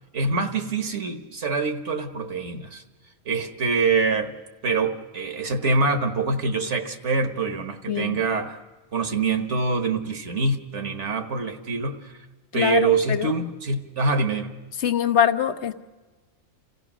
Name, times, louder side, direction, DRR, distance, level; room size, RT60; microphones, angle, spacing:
voice 1, 0.1-2.8 3.3-4.3 4.6-8.6 8.9-12.1 12.5-14.5, right 3 dB, 60° right, 7 dB, 1.6 m, -25 dB
voice 2, 7.9-8.2 12.5-13.3 14.8-15.7, left 9 dB, 60° left, 9 dB, 1.0 m, -23 dB
27.5 x 15.5 x 6.2 m, 1.2 s
omnidirectional pair, 1.4 m